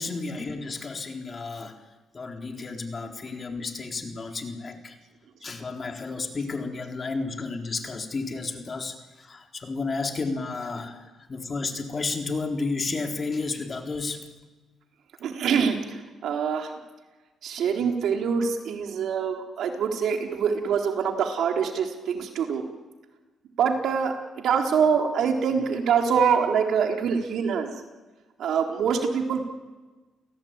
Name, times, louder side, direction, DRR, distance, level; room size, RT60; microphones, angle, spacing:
voice 1, 0.0-1.7 2.1-5.0 5.4-11.0 11.3-14.2, left 3 dB, 35° left, 4 dB, 3.9 m, -32 dB
voice 2, 15.2-16.7 17.4-22.7 23.6-27.7 28.4-29.5, right 6 dB, 70° right, 3 dB, 3.9 m, -25 dB
29.5 x 17.5 x 9.1 m, 1.3 s
cardioid pair, 90°, 0 cm